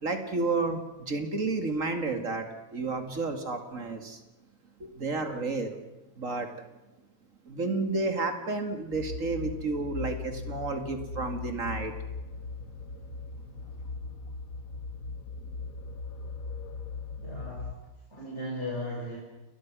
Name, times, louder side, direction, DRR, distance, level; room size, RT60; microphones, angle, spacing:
voice 1, 0.0-4.2 4.8-5.8 6.2-6.5 7.5-11.9, right 3 dB, 65° right, 6 dB, 2.8 m, -31 dB
sound 1, 8.9-17.7, left 4 dB, 85° left, 1.9 m, -39 dB
voice 2, 17.2-17.8 18.1-19.2, left 1 dB, 55° left, -3 dB, 5.8 m, -36 dB
29.0 x 21.0 x 6.3 m, 1.1 s
omnidirectional pair, 1.4 m